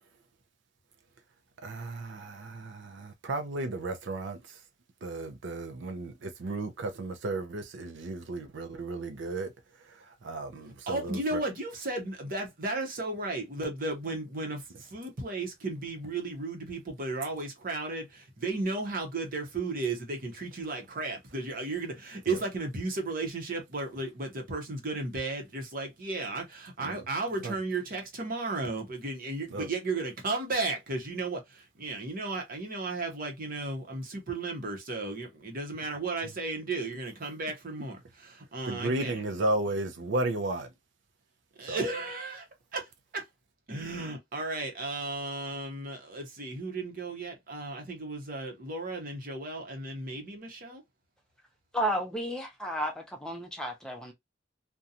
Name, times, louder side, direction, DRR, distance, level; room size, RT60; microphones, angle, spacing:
voice 1, 1.6-4.6 5.0-11.4 22.3-22.4 26.8-27.0 27.4-27.6 29.5-29.7 38.7-40.7 41.6-41.8, right 2 dB, 70° right, 0.5 m, -34 dB
voice 2, 10.9-39.2 41.6-42.5 42.7-43.3 43.7-50.8, right 3 dB, 50° right, 0.9 m, -34 dB
voice 3, 51.7-54.1, equal, 5° left, 0.5 m, -32 dB
2.5 x 2.2 x 2.7 m
head